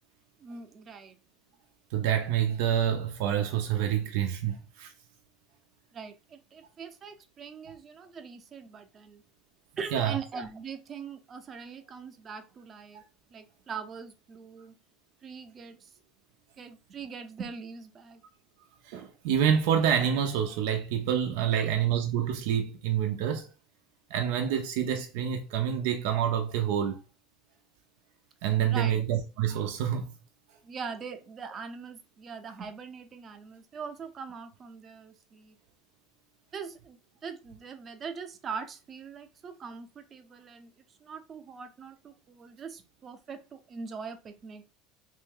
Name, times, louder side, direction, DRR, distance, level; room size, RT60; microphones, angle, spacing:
voice 1, 0.4-1.2 5.9-9.2 9.8-13.0 13.3-14.7 15.2-15.9 16.6-18.2 21.5-21.8 28.6-29.0 30.6-35.6 36.5-40.7 41.0-44.6, right 5 dB, 35° right, 0.7 m, -42 dB
voice 2, 1.9-4.9 9.9-10.2 12.9-13.0 18.8-23.5 24.1-27.0 28.4-30.1, right 9 dB, 75° right, 0.6 m, -27 dB
3.2 x 2.6 x 3.6 m
supercardioid pair, 105°, 0 cm